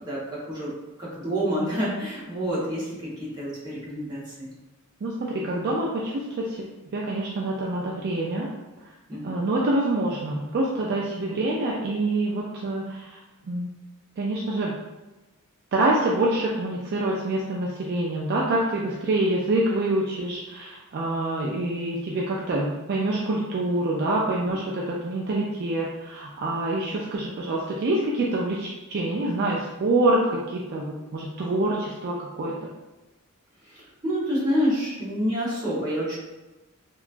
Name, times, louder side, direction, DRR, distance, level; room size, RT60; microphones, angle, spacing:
voice 1, 0.1-0.7 1.0-4.5 9.1-9.5 24.5-24.6 33.6-36.2, equal, 20° right, -8 dB, 1.0 m, -28 dB
voice 2, 5.0-6.6 6.9-8.5 8.8-8.9 9.2-13.2 13.5-13.7 14.2-14.7 15.7-32.6, right 2 dB, 45° right, -3 dB, 0.3 m, -26 dB
2.9 x 2.2 x 2.4 m, 1.1 s
head